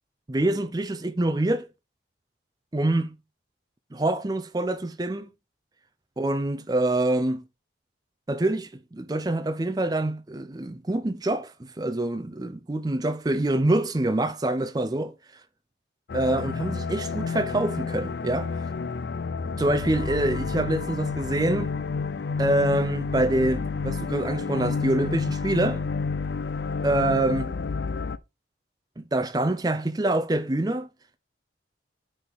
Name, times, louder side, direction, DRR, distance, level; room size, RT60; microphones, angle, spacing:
voice 1, 0.3-1.7 2.7-3.1 3.9-5.3 6.2-7.4 8.3-15.1 16.1-18.5 19.6-21.7 22.4-25.8 26.8-27.5 29.0-30.9, right 1 dB, 20° right, 0.5 m, -25 dB
sound 1, 16.1-28.2, left 4 dB, 60° left, 0.4 m, -30 dB
9.3 x 4.0 x 3.6 m
head